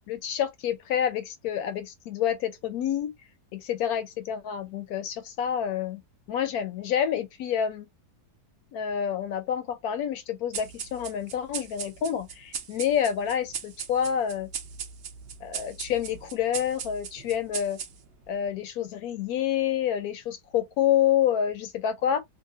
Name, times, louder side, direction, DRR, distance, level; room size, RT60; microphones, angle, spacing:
voice 1, 0.1-3.1 3.5-6.0 6.3-7.9 8.7-14.5 15.4-17.8 18.3-22.2, left 9 dB, 70° left, 1.0 m, -28 dB
sound 1, 10.5-18.3, right 7 dB, 70° right, 0.6 m, -39 dB
2.8 x 2.4 x 2.6 m
omnidirectional pair, 1.8 m